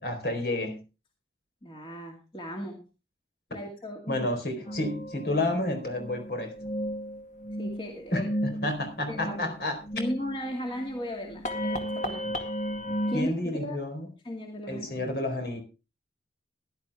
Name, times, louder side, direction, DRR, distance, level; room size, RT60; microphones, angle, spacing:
voice 1, 0.0-0.8 4.1-6.5 8.1-9.8 13.1-14.1 14.7-15.6, left 1 dB, 60° left, 5 dB, 4.3 m, -30 dB
voice 2, 1.6-2.8 3.5-4.3 4.7-4.8 7.6-8.3 9.1-9.6 9.9-12.3 13.1-13.8 14.2-15.1, equal, 30° left, 1 dB, 2.3 m, -36 dB
sound 1, 4.7-13.2, equal, 45° left, 2.1 m, -34 dB
16.0 x 11.5 x 3.5 m, 0.30 s
head